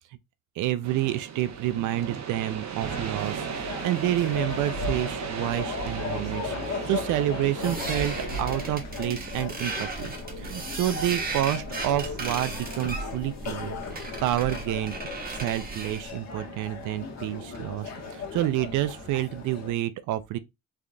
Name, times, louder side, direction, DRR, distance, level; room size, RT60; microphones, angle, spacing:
voice 1, 0.6-13.8 14.2-14.9 15.3-20.4, right 14 dB, 85° right, 0.5 m, -29 dB
sound 1, 0.8-8.8, right 8 dB, 65° right, 0.9 m, -36 dB
sound 2, 2.8-19.7, left 3 dB, 60° left, 1.3 m, -37 dB
sound 3, 7.6-16.1, right 3 dB, 30° right, 1.4 m, -36 dB
3.8 x 3.4 x 2.3 m
cardioid pair, 90°, 30 cm